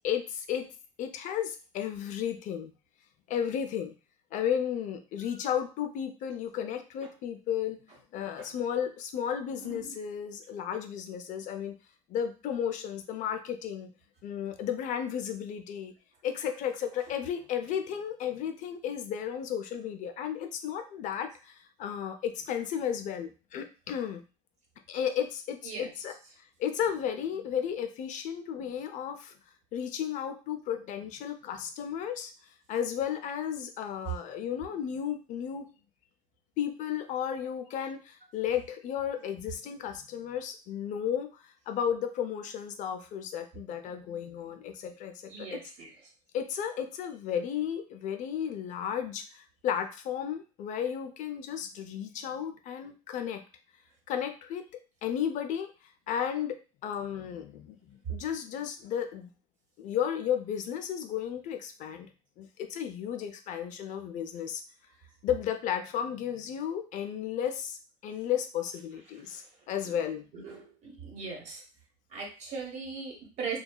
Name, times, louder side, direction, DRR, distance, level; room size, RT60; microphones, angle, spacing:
voice 1, 0.0-0.7 1.0-2.7 3.3-3.9 4.3-7.8 8.1-11.8 12.1-13.9 14.2-15.9 16.2-24.2 24.9-26.1 26.6-29.3 29.7-32.3 32.7-35.7 36.6-45.6 46.3-53.4 54.1-54.7 55.0-55.7 56.1-59.3 59.8-62.1 62.4-64.6 65.2-70.3, left 9 dB, 50° left, 6 dB, 0.5 m, -33 dB
voice 2, 9.5-10.0 25.6-25.9 45.3-45.9 69.1-69.4 69.8-70.0 70.3-71.6 72.1-73.6, right 5 dB, 45° right, 0 dB, 1.1 m, -40 dB
2.6 x 2.2 x 2.2 m, 0.34 s
supercardioid pair, 110°, 16 cm